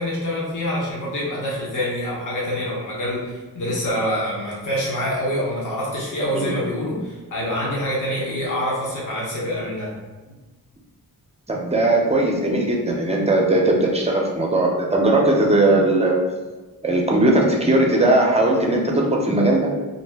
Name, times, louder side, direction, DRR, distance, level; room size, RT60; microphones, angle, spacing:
voice 1, 0.0-9.9, equal, 60° left, -6 dB, 0.9 m, -26 dB
voice 2, 11.5-16.2 16.8-19.7, right 2 dB, 20° right, -1 dB, 0.6 m, -18 dB
2.6 x 2.1 x 3.3 m, 1.2 s
cardioid pair, 70°, 36 cm